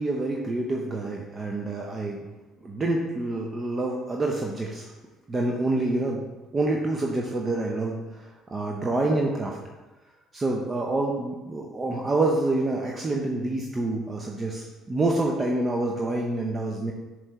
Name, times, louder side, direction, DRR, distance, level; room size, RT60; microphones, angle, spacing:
voice 1, 0.0-2.2 2.6-4.9 5.3-6.2 6.5-9.6 10.3-16.9, right 2 dB, 25° right, 0 dB, 0.7 m, -27 dB
7.4 x 3.2 x 4.6 m, 1.2 s
figure-of-eight pair, 55°, 0 cm